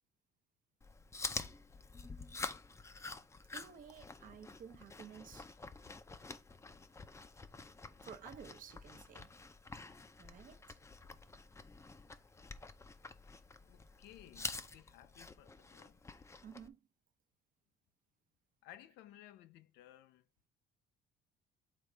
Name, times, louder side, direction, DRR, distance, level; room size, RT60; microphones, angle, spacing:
Chewing mastication, 0.8-16.7, left 3 dB, 15° left, 0.6 m, -48 dB
voice 1, 3.5-5.5 8.0-9.3 10.2-10.8 16.4-16.8, right 8 dB, 55° right, 1.0 m, -53 dB
voice 2, 13.6-16.0 18.6-20.2, left 13 dB, 85° left, 0.6 m, -58 dB
8.6 x 4.0 x 3.3 m
cardioid pair, 110°, 17 cm